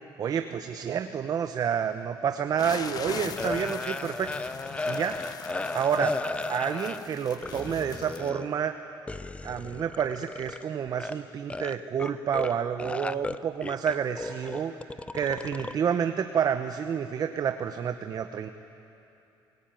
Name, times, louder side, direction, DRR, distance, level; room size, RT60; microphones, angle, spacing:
voice 1, 0.2-4.3 4.9-5.2 5.7-6.2 6.5-8.7 9.4-14.7 15.1-18.5, right 8 dB, 45° right, 8 dB, 0.9 m, -29 dB
sound 1, 2.6-8.3, left 7 dB, 45° left, 1.0 m, -41 dB
sound 2, 3.4-7.1 7.4-8.7 9.1-10.6 10.9-11.2 11.5-12.5 12.8-15.7, left 3 dB, 15° left, 0.6 m, -35 dB
28.0 x 18.0 x 9.1 m, 2.9 s
cardioid pair, 110°, 9 cm